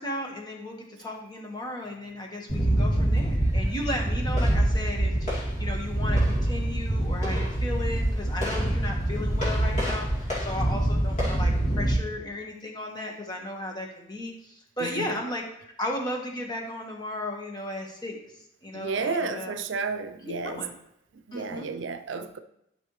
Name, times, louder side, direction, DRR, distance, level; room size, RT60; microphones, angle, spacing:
voice 1, 0.0-18.2 18.6-19.5 20.4-20.7 21.3-21.7, left 1 dB, 20° left, 1.4 m, -35 dB
sound 1, 2.5-11.9, right 1 dB, 40° left, 2.4 m, -25 dB
voice 2, 14.8-15.1 18.7-20.7 21.1-22.4, right 4 dB, 70° right, 0.5 m, -32 dB
12.0 x 5.4 x 3.2 m
head